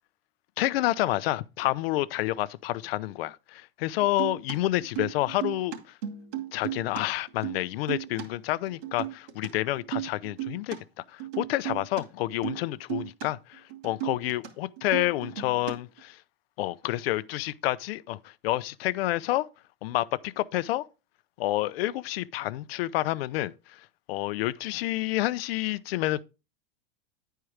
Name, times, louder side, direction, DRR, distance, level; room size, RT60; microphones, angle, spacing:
voice 1, 0.6-5.8 6.5-10.8 11.1-16.2 16.6-19.5 19.8-20.8 21.4-23.8 24.1-26.2, left 16 dB, 70° left, 0.6 m, -29 dB
sound 1, 4.0-7.0 7.3-8.3 8.7-9.5 9.8-10.8 11.2-12.0 12.4-12.6 12.9-13.3 13.5-14.5 14.8-16.0, right 13 dB, 65° right, 2.6 m, -35 dB
9.6 x 4.6 x 4.9 m
hypercardioid pair, 115°, 32 cm